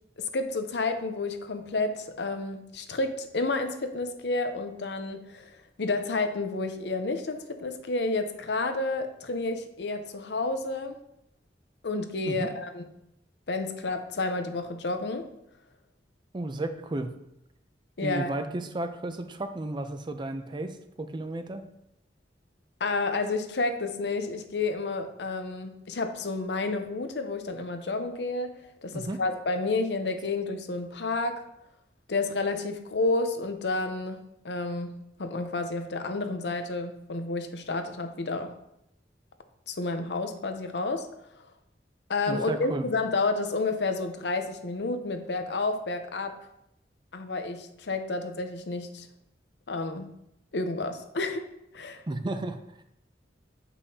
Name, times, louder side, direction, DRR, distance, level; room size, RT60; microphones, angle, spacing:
voice 1, 0.2-5.5 5.8-11.0 11.8-12.8 13.5-15.3 18.0-18.3 22.8-28.5 28.8-31.4 32.1-34.9 35.2-38.5 39.7-41.1 42.1-46.3 47.1-49.1 49.7-50.1 50.5-51.5 51.7-52.0, left 3 dB, 70° left, 8 dB, 0.7 m, -30 dB
voice 2, 16.3-17.2 18.0-21.7 28.9-29.2 42.3-42.9 52.1-52.8, right 2 dB, 25° right, 8 dB, 0.5 m, -33 dB
8.2 x 5.5 x 2.8 m, 0.81 s
head